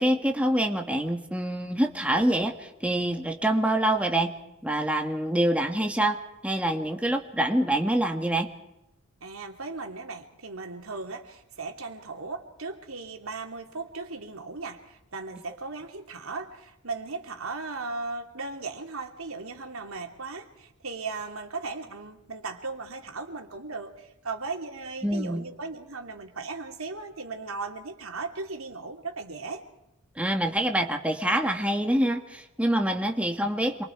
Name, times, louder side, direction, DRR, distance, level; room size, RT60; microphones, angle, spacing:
voice 1, 0.0-4.3 4.6-6.2 6.4-8.5 25.0-25.4 30.2-33.8, right 1 dB, 5° right, 3 dB, 1.8 m, -26 dB
voice 2, 9.2-29.7, right 3 dB, 85° right, 4 dB, 2.8 m, -37 dB
27.5 x 24.0 x 4.6 m, 0.86 s
head